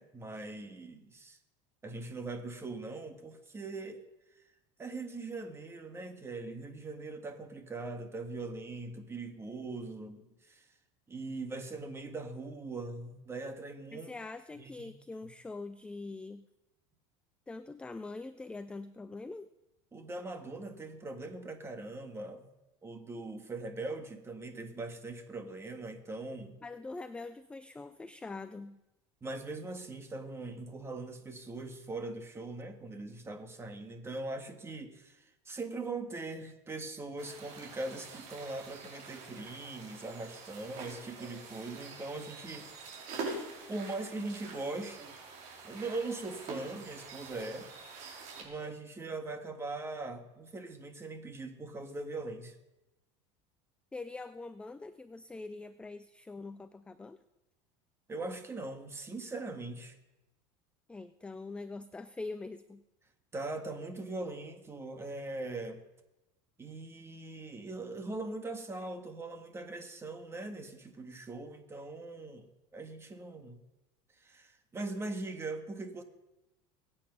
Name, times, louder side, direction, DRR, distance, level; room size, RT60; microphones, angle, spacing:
voice 1, 0.0-1.4 1.8-4.0 4.8-10.7 11.1-14.1 14.6-14.9 19.9-22.5 22.8-26.6 29.2-42.7 43.7-45.1 45.6-47.7 48.4-52.6 58.1-60.0 63.3-65.8 66.6-73.6 74.2-76.0, right 2 dB, 15° right, 6 dB, 1.8 m, -41 dB
voice 2, 13.9-16.5 17.5-19.5 26.6-28.8 53.9-57.2 60.9-62.8, left 3 dB, 5° left, 12 dB, 0.4 m, -43 dB
sound 1, 37.2-48.4, right 4 dB, 55° right, 4.9 m, -45 dB
21.5 x 8.8 x 5.4 m, 0.97 s
supercardioid pair, 135°, 15 cm